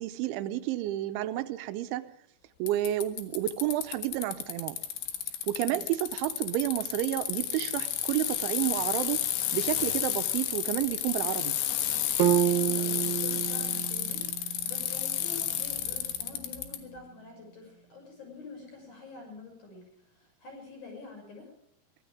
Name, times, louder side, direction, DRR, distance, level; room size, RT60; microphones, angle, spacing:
voice 1, 0.0-2.1 2.6-4.8 5.5-9.2 9.5-11.6, right 14 dB, 90° right, 11 dB, 3.3 m, -30 dB
Bicycle, 2.7-16.8, left 11 dB, 75° left, 3.7 m, -31 dB
sound 1, 12.2-16.3, right 12 dB, 75° right, 2.6 m, -30 dB
voice 2, 12.4-19.9 20.1-21.5, left 3 dB, 40° left, 1 dB, 7.7 m, -47 dB
23.5 x 17.0 x 3.6 m, 0.72 s
omnidirectional pair, 5.2 m